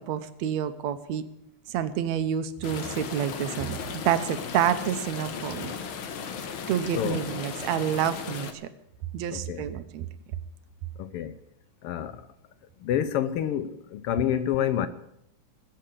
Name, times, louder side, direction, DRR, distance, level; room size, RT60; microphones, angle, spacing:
voice 1, 0.1-1.2 1.7-5.7 6.7-8.5 9.1-10.1, right 10 dB, 70° right, 1.9 m, -28 dB
sound 1, 2.6-8.5, left 6 dB, 55° left, 1.6 m, -36 dB
voice 2, 6.9-7.2 9.3-9.6 11.0-11.3 11.8-12.2 12.8-14.9, left 10 dB, 80° left, 1.3 m, -28 dB
19.5 x 7.8 x 8.5 m
omnidirectional pair, 3.5 m